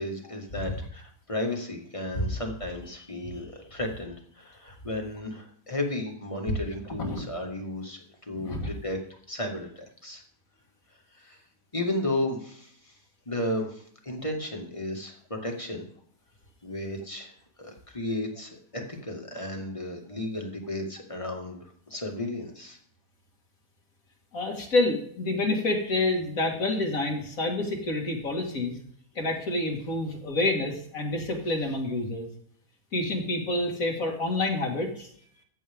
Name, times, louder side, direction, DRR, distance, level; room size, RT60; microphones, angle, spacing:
voice 1, 0.0-9.0 9.3-10.2 11.1-11.4 11.7-13.0 13.3-15.8 16.6-22.8, left 1 dB, 20° left, 1 dB, 1.8 m, -34 dB
voice 2, 8.3-8.7 24.3-28.8 29.2-32.3 32.9-35.1, left 2 dB, 60° left, 1 dB, 2.4 m, -28 dB
15.0 x 8.6 x 3.6 m, 0.62 s
omnidirectional pair, 1.6 m